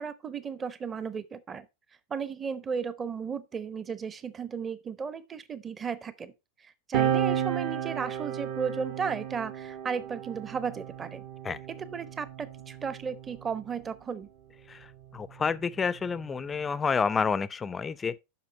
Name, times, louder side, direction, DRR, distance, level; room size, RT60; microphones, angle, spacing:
voice 1, 0.0-1.7 2.1-6.3 6.6-11.2 11.8-14.3, right 6 dB, 20° right, 0.8 m, -35 dB
sound 1, 6.9-13.9 14.8-16.7, right 9 dB, 45° right, 1.0 m, -34 dB
voice 2, 14.7-18.2, left 5 dB, 15° left, 0.4 m, -29 dB
8.4 x 6.0 x 4.0 m
figure-of-eight pair, 90°, 0 cm